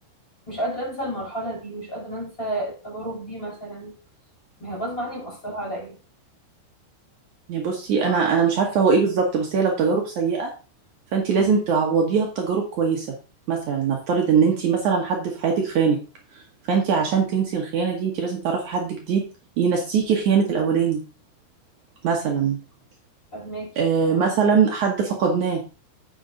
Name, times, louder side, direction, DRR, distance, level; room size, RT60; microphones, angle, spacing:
voice 1, 0.5-3.9 4.6-6.0 8.0-8.4 11.4-11.6 23.3-23.7, right 1 dB, 10° left, -3 dB, 4.7 m, -31 dB
voice 2, 7.5-10.5 11.1-13.1 13.5-16.0 16.3-19.2 19.6-21.0 22.0-22.6 23.8-25.6, right 6 dB, 90° right, 1 dB, 1.6 m, -22 dB
9.4 x 6.8 x 3.9 m, 0.33 s
omnidirectional pair, 5.6 m